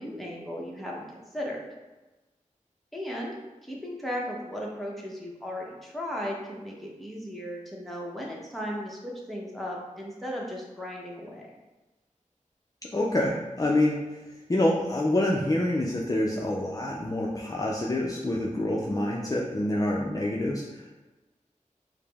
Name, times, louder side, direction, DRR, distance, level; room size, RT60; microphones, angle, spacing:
voice 1, 0.0-1.7 2.9-11.4, equal, ahead, -3 dB, 0.8 m, -36 dB
voice 2, 12.8-14.0 14.5-20.9, left 1 dB, 25° left, -3 dB, 0.4 m, -27 dB
4.8 x 2.0 x 3.4 m, 1.1 s
wide cardioid pair, 65°, 13 cm